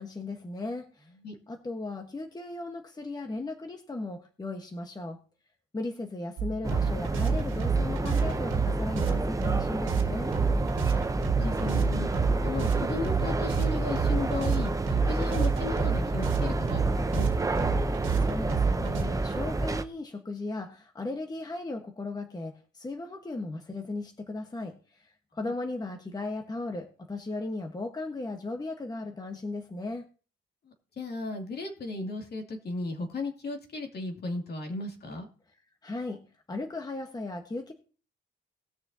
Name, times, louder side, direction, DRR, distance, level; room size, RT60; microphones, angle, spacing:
voice 1, 0.0-1.1 1.5-5.2 5.7-10.3 18.2-30.0 35.8-37.7, left 2 dB, 20° left, 4 dB, 1.3 m, -36 dB
sound 1, 6.4-19.0, right 5 dB, 90° right, 1.8 m, -29 dB
sound 2, 6.6-19.8, right 2 dB, 15° right, 0.8 m, -29 dB
voice 2, 11.3-12.1 12.4-14.7 15.1-17.6 31.0-35.3, left 3 dB, 55° left, 2 dB, 2.6 m, -35 dB
19.5 x 6.6 x 2.8 m, 0.38 s
cardioid pair, 90°, 20 cm